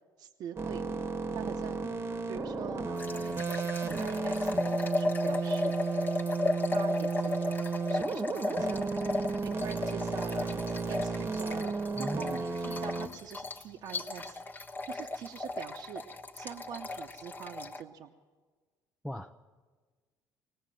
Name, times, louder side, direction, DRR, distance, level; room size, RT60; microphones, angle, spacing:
voice 1, 0.2-0.9 1.3-1.9 2.3-5.8 6.7-7.6 7.9-10.6 10.9-14.4 14.9-16.0 16.3-18.1, right 9 dB, 60° right, 1 dB, 1.0 m, -44 dB
sound 1, 0.6-13.1, right 4 dB, 30° right, 1.3 m, -34 dB
sound 2, 3.0-17.8, left 2 dB, 25° left, 1.3 m, -35 dB
voice 2, 12.0-12.4 19.0-19.4, equal, ahead, 5 dB, 0.6 m, -38 dB
19.5 x 19.0 x 7.7 m, 1.4 s
cardioid pair, 110°, 8 cm